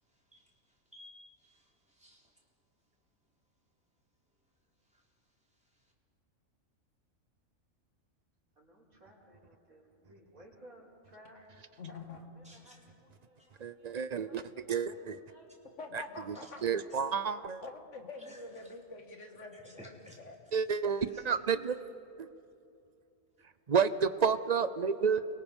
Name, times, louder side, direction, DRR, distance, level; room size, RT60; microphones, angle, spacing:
voice 1, 0.1-2.4 4.8-5.9 12.4-12.8 13.4-13.6 16.3-16.5 18.3-18.8 19.5-20.6 20.9-21.3, equal, 5° right, -3 dB, 4.0 m, -58 dB
voice 2, 8.5-11.4 11.8-15.5 16.2-17.2, right 1 dB, 90° right, -3 dB, 5.1 m, -59 dB
voice 3, 11.8-12.2 15.8-16.6 17.6-19.9 20.2-20.3, left 3 dB, 60° left, 4 dB, 2.3 m, -46 dB
voice 4, 13.6-14.4 14.7-15.2 15.9-16.4 16.6-17.6 20.5-21.8 22.2-22.3 23.4-25.3, right 6 dB, 45° right, 13 dB, 0.5 m, -30 dB
30.0 x 23.0 x 5.4 m, 2.6 s
omnidirectional pair, 1.4 m